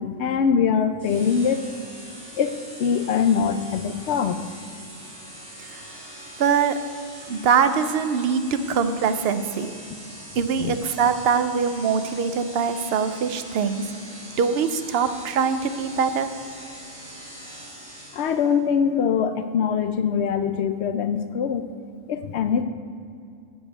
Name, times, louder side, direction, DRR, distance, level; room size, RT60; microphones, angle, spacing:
voice 1, 0.0-1.7 2.4-4.4 10.6-10.7 18.1-21.6 22.1-22.6, left 7 dB, 65° left, 9 dB, 0.8 m, -23 dB
sound 1, 1.0-18.6, right 1 dB, 35° right, 3.0 m, -42 dB
voice 2, 6.4-6.7 7.3-8.4 8.7-9.7 10.4-13.9 14.4-16.3, right 6 dB, 60° right, 10 dB, 0.7 m, -23 dB
9.6 x 5.2 x 8.1 m, 2.4 s
omnidirectional pair, 1.3 m